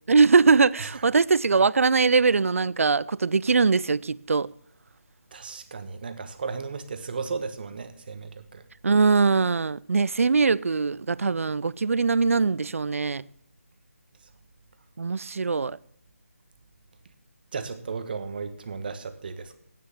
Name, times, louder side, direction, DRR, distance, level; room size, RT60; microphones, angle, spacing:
voice 1, 0.1-4.5 8.8-13.2 15.0-15.8, right 4 dB, 70° right, 0.4 m, -21 dB
voice 2, 5.3-8.6 17.5-19.6, right 4 dB, 40° right, 1.2 m, -35 dB
10.0 x 9.2 x 7.2 m
figure-of-eight pair, 165°, 8 cm